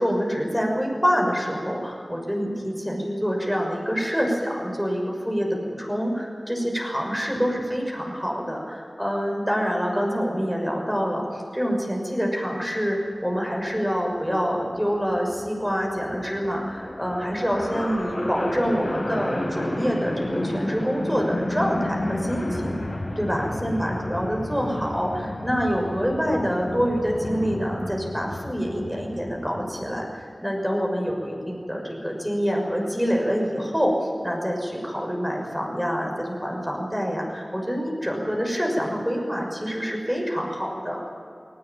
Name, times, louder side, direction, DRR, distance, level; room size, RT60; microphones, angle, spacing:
voice 1, 0.0-22.8 23.2-33.9 34.2-41.1, equal, 5° right, 0 dB, 6.3 m, -26 dB
sound 1, 13.5-13.6 13.9-14.0 14.2-30.0, left 1 dB, 60° left, 5.2 m, -32 dB
20.0 x 19.0 x 8.9 m, 2.4 s
wide cardioid pair, 65°, 0 cm